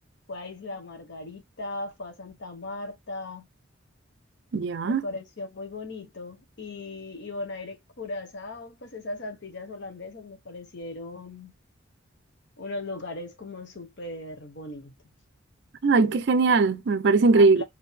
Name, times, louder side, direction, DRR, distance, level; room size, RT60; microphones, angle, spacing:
voice 1, 0.3-3.5 4.8-11.5 12.6-14.9 17.3-17.6, left 2 dB, 55° left, 0.9 m, -38 dB
voice 2, 4.5-5.0 15.8-17.6, right 3 dB, 55° right, 0.4 m, -20 dB
4.5 x 2.7 x 3.2 m
head